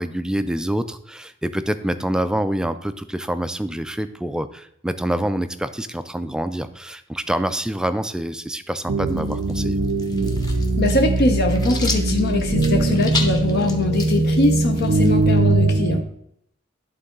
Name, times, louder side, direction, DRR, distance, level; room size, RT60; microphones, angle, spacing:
voice 1, 0.0-9.8, right 1 dB, 5° right, 11 dB, 0.3 m, -26 dB
sound 1, 8.9-16.0, right 2 dB, 85° right, 0.6 m, -21 dB
sound 2, 9.1-15.5, left 3 dB, 20° left, 0.9 m, -33 dB
voice 2, 10.8-16.0, left 2 dB, 55° left, 3 dB, 0.7 m, -22 dB
11.0 x 3.9 x 3.7 m, 0.72 s
head